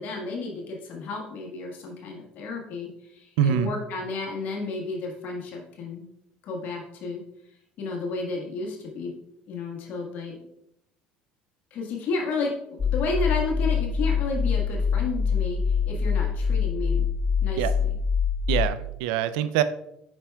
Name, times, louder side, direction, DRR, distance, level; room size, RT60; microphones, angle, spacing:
voice 1, 0.0-6.0 6.4-7.2 7.8-9.2 9.5-10.4 11.7-12.5 12.8-17.1 17.4-17.6, left 3 dB, 60° left, 0 dB, 1.4 m, -32 dB
voice 2, 3.4-3.7 17.6-17.7 18.5-19.6, right 10 dB, 85° right, 13 dB, 0.4 m, -24 dB
sound 1, 12.8-18.7, left 6 dB, 35° left, 0.5 m, -24 dB
7.6 x 5.7 x 2.2 m, 0.78 s
supercardioid pair, 90°, 3 cm